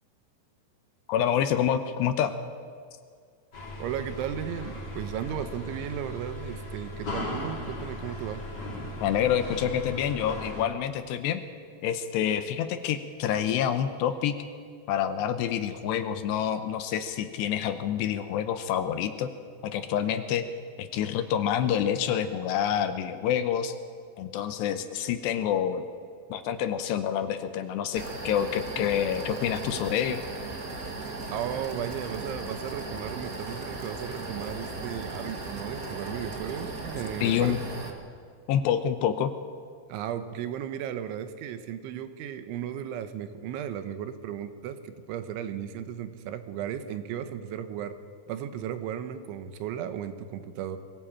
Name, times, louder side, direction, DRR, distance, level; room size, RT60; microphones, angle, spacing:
voice 1, 1.1-2.3 9.0-11.4 11.8-14.4 14.9-19.3 19.6-20.5 20.8-23.8 24.2-25.8 26.3-30.2 37.2-37.6 38.5-39.3, left 9 dB, 80° left, 9 dB, 2.7 m, -27 dB
sound 1, 3.5-10.7, left 1 dB, 25° left, 4.3 m, -37 dB
voice 2, 3.8-8.5 31.3-37.7 39.9-48.0 48.3-50.8, right 9 dB, 85° right, 10 dB, 3.5 m, -35 dB
sound 2, 27.9-37.9, right 3 dB, 60° right, 0.9 m, -37 dB
23.0 x 16.5 x 8.7 m, 2.1 s
omnidirectional pair, 5.4 m